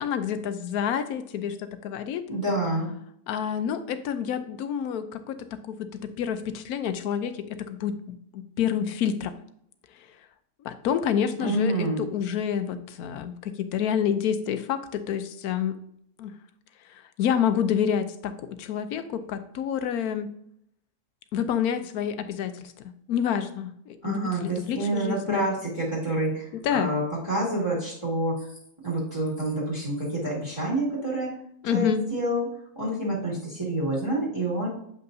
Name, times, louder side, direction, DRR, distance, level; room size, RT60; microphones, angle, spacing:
voice 1, 0.0-2.2 3.3-9.3 9.9-10.1 10.6-15.8 16.2-16.3 16.8-20.3 21.3-22.7 23.1-25.4 26.5-26.9 31.6-32.0, left 8 dB, 85° left, 10 dB, 1.1 m, -28 dB
voice 2, 2.3-2.9 11.4-12.0 24.0-26.5 26.7-27.0 27.3-28.4 28.8-31.3 31.7-32.5 32.8-34.7, right 1 dB, 20° right, -6 dB, 2.0 m, -27 dB
7.7 x 5.4 x 2.6 m, 0.71 s
omnidirectional pair, 1.5 m